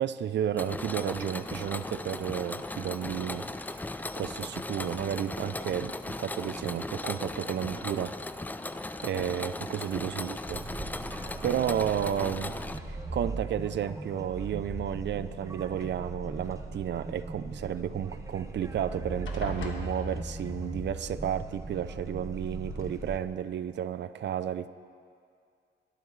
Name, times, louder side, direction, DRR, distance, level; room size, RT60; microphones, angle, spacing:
voice 1, 0.0-3.5 3.7-3.8 4.2-8.1 9.0-10.6 11.4-12.5 12.8-24.7, right 9 dB, 65° right, 13 dB, 0.5 m, -32 dB
Mechanisms, 0.6-12.8, left 2 dB, 10° left, 0.3 m, -37 dB
sound 1, 10.5-23.2, right 2 dB, 15° right, 0.9 m, -39 dB
sound 2, 14.2-14.8 15.7-16.5 18.3-18.4 18.7-18.9 19.2-20.7 21.8-21.9 22.5-22.8, left 4 dB, 80° left, 1.3 m, -42 dB
21.0 x 10.5 x 3.2 m, 2.3 s
cardioid pair, 105°, 20 cm